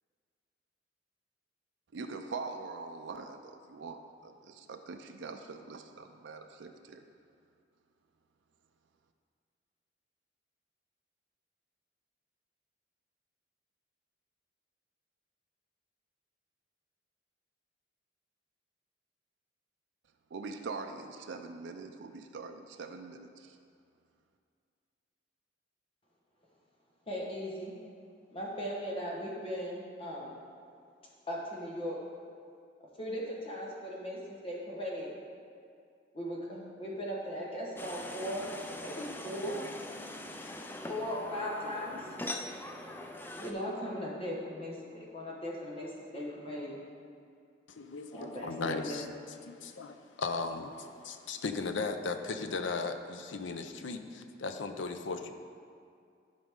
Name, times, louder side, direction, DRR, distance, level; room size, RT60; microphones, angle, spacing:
voice 1, 1.9-7.0 20.3-23.6, right 4 dB, 70° right, 5 dB, 0.4 m, -43 dB
voice 2, 27.1-27.7 28.3-30.3 31.3-32.0 33.0-35.2 36.1-38.5 38.8-39.6 40.9-42.1 43.4-46.7 48.1-49.1, equal, 30° left, -4 dB, 1.3 m, -38 dB
sound 1, 37.8-43.5, left 1 dB, 10° left, 0.3 m, -42 dB
voice 3, 47.8-49.0 49.4-55.3, left 4 dB, 80° left, 7 dB, 0.5 m, -37 dB
11.5 x 5.2 x 3.6 m, 2.3 s
head